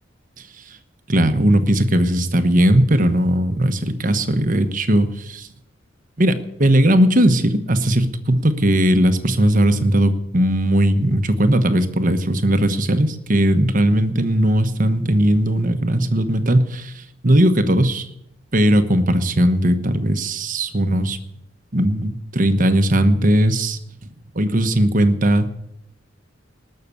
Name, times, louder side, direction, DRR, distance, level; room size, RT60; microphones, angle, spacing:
voice 1, 1.1-5.5 6.2-18.1 18.5-21.2 21.7-23.8 24.3-25.5, right 1 dB, 45° right, 9 dB, 1.1 m, -18 dB
19.5 x 6.7 x 8.4 m, 0.83 s
head